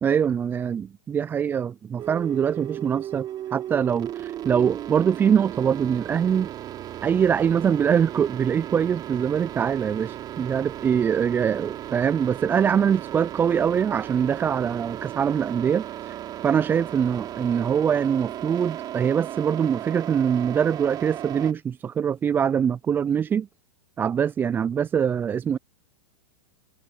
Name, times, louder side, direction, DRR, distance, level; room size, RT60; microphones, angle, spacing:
voice 1, 0.0-6.5 7.0-16.2 16.4-23.5 24.0-25.6, right 8 dB, 15° right, 0.3 m, -23 dB
sound 1, 2.0-21.5, right 12 dB, 35° right, 3.9 m, -36 dB
hypercardioid pair, 105°, 12 cm